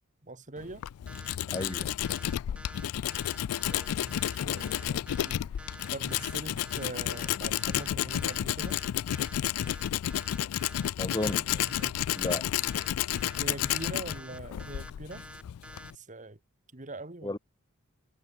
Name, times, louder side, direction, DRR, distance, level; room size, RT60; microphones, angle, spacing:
voice 1, 0.2-0.8 3.7-8.8 11.5-12.0 13.4-15.2 15.9-16.4 16.7-17.4, right 2 dB, 35° right, 1.8 m, -43 dB
Tools, 0.6-16.0, left 11 dB, 75° left, 0.3 m, -31 dB
sound 1, 1.1-15.9, right 1 dB, 5° right, 2.3 m, -48 dB
voice 2, 1.5-1.9 11.0-11.7 12.2-12.4 17.2-17.4, left 1 dB, 20° left, 1.2 m, -33 dB
head